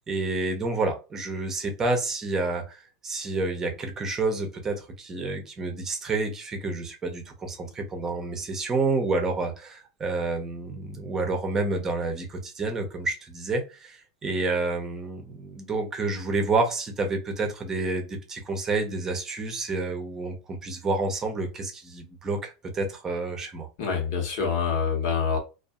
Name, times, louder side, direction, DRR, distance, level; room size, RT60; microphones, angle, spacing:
voice 1, 0.1-23.7, right 3 dB, 20° right, 0.7 m, -29 dB
voice 2, 23.8-25.4, left 6 dB, 70° left, 1.1 m, -26 dB
2.6 x 2.4 x 2.3 m
supercardioid pair, 125°, 2 cm